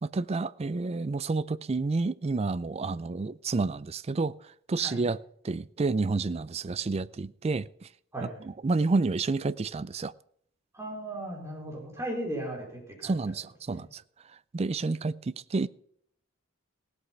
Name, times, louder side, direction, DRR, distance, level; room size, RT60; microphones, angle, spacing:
voice 1, 0.0-4.3 4.7-5.2 5.4-7.7 8.4-10.1 13.0-14.0 14.5-15.7, right 3 dB, 30° right, 0.4 m, -29 dB
voice 2, 10.7-13.1 13.7-13.8, right 1 dB, 15° right, 4.2 m, -36 dB
17.0 x 8.2 x 5.7 m
head